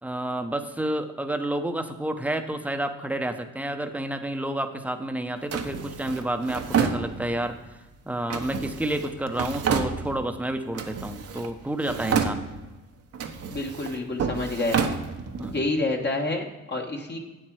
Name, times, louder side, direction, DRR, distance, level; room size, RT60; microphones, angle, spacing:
voice 1, 0.0-7.6 8.1-12.4 15.4-15.6, right 1 dB, 5° right, 7 dB, 0.8 m, -30 dB
Drawer open or close, 5.5-7.6 8.3-10.4 10.7-11.5 11.8-12.8 13.1-15.6, right 6 dB, 55° right, 1.0 m, -29 dB
voice 2, 13.5-14.9 15.5-17.2, left 2 dB, 35° left, 1 dB, 1.3 m, -28 dB
8.8 x 7.7 x 4.7 m, 1.1 s
cardioid pair, 90°, 30 cm